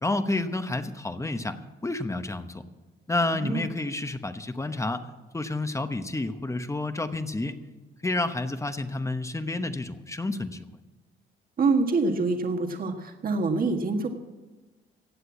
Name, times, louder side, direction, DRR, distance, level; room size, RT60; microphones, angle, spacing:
voice 1, 0.0-2.6 3.1-5.1 5.3-7.6 8.0-10.7, left 2 dB, 15° left, 9 dB, 1.0 m, -30 dB
voice 2, 3.3-3.7 11.6-14.1, right 3 dB, 45° right, 4 dB, 1.5 m, -26 dB
16.0 x 8.0 x 8.3 m, 1.2 s
cardioid pair, 90°, 20 cm